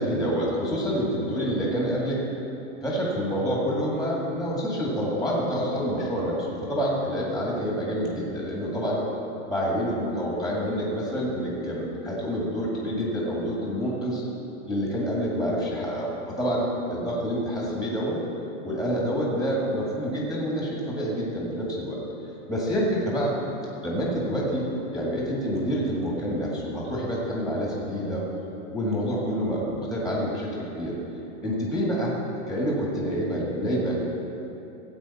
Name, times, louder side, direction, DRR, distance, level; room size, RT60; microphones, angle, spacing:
voice 1, 0.0-2.2 2.8-9.0 9.5-14.2 14.7-18.2 18.6-22.0 22.5-23.3 23.8-24.6 24.9-28.3 28.7-30.9 31.4-32.1 32.5-34.1, equal, ahead, -5 dB, 2.0 m, -27 dB
15.5 x 8.3 x 4.2 m, 2.9 s
hypercardioid pair, 150°, 37 cm